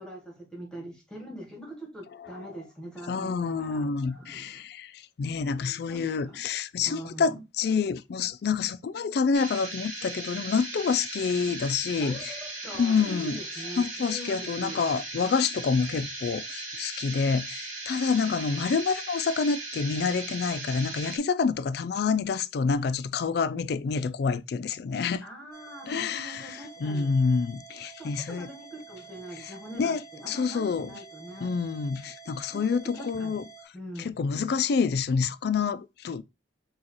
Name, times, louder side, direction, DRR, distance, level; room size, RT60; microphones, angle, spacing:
voice 1, 0.0-4.6 5.9-6.4 6.9-7.4 12.0-14.8 18.2-18.3 25.2-27.2 28.0-31.5 32.5-32.6 33.0-33.4 33.7-34.1, right 1 dB, 5° left, 1.1 m, -42 dB
voice 2, 3.1-12.4 12.7-13.4 13.8-25.2 25.9-28.5 29.4-30.9 31.4-33.4 34.0-36.2, left 5 dB, 55° left, 0.3 m, -28 dB
sound 1, 9.3-21.2, right 2 dB, 40° right, 1.5 m, -38 dB
sound 2, 25.5-33.6, right 4 dB, 15° right, 2.1 m, -49 dB
6.4 x 2.4 x 2.8 m
head